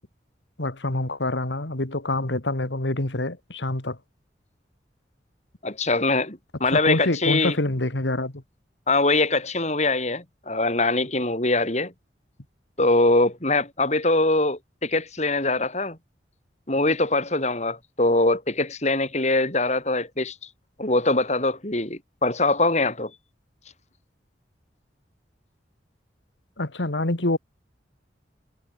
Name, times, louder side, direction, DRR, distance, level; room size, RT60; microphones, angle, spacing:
voice 1, 0.6-4.0 6.7-8.4 26.6-27.4, left 2 dB, 80° left, 2.3 m, -26 dB
voice 2, 5.6-7.5 8.9-11.9 12.8-16.0 16.7-20.3 20.8-23.1, left 2 dB, 40° left, 6.4 m, -23 dB
head